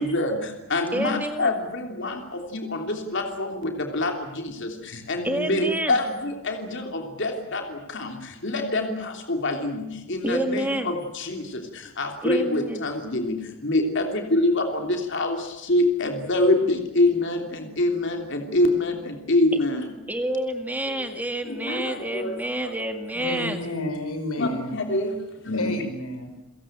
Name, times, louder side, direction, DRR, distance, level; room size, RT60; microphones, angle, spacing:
voice 1, 0.0-19.9 21.0-21.1 21.4-22.7 23.6-23.8 24.4-25.7, left 2 dB, 55° left, 4 dB, 3.2 m, -26 dB
voice 2, 0.9-1.5 5.2-6.0 10.2-10.9 12.2-12.8 20.1-23.6, right 1 dB, 5° right, 6 dB, 1.9 m, -28 dB
voice 3, 23.1-24.8 25.5-26.4, left 1 dB, 85° left, 6 dB, 6.2 m, -31 dB
29.5 x 17.0 x 9.1 m, 0.95 s
head